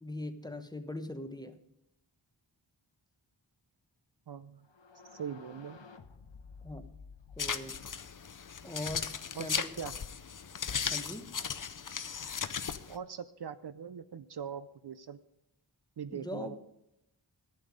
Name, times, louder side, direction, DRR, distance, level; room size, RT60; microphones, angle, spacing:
voice 1, 0.0-1.6 6.6-6.9 7.4-7.7 8.6-9.7 10.9-11.3 16.1-16.6, left 1 dB, 10° left, 8 dB, 1.0 m, -41 dB
voice 2, 4.3-4.7 5.1-5.8 9.3-9.9 12.9-15.2 16.0-16.6, right 7 dB, 60° right, 13 dB, 0.5 m, -41 dB
sound 1, 4.6-9.5, left 5 dB, 70° left, 0.9 m, -54 dB
sound 2, 7.4-13.0, left 6 dB, 45° left, 0.6 m, -37 dB
11.0 x 9.2 x 5.1 m, 0.85 s
wide cardioid pair, 45°, 46 cm